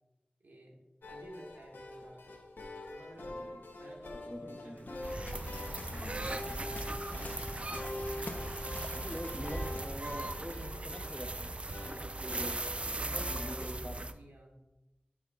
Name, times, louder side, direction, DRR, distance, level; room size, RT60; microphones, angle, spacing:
voice 1, 0.4-0.8 1.1-2.2 2.9-3.4 3.8-5.3 6.0-7.0 12.9-13.6 13.9-14.5, right 1 dB, 75° right, -1 dB, 1.7 m, -54 dB
sound 1, 1.0-13.7, left 1 dB, 90° left, 0.9 m, -45 dB
voice 2, 3.3-3.7 4.3-4.9 5.9-6.3 8.9-11.6 11.8-12.5 13.3-14.1, equal, 10° left, 7 dB, 0.6 m, -45 dB
Waves surf, 4.8-10.0, left 1 dB, 50° left, 0.8 m, -45 dB
sound 2, 5.0-14.1, right 2 dB, 35° right, 0.4 m, -39 dB
9.9 x 5.6 x 2.4 m, 0.96 s
wide cardioid pair, 65°, 3 cm